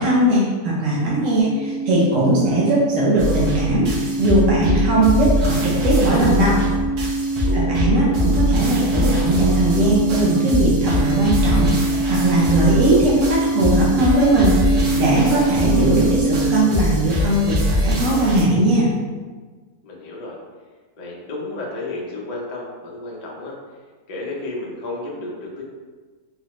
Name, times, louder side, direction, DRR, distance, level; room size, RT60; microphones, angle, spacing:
voice 1, 0.0-6.6 7.5-18.9, right 1 dB, 60° right, -6 dB, 1.0 m, -19 dB
sound 1, 1.4-16.6, right 2 dB, 5° left, 0.6 m, -24 dB
sound 2, 3.2-18.4, left 1 dB, 75° right, 1.3 m, -23 dB
voice 2, 7.4-7.9 19.8-20.4 21.0-23.5 24.1-25.6, left 2 dB, 75° left, -4 dB, 0.3 m, -32 dB
3.9 x 2.1 x 2.9 m, 1.4 s
omnidirectional pair, 1.7 m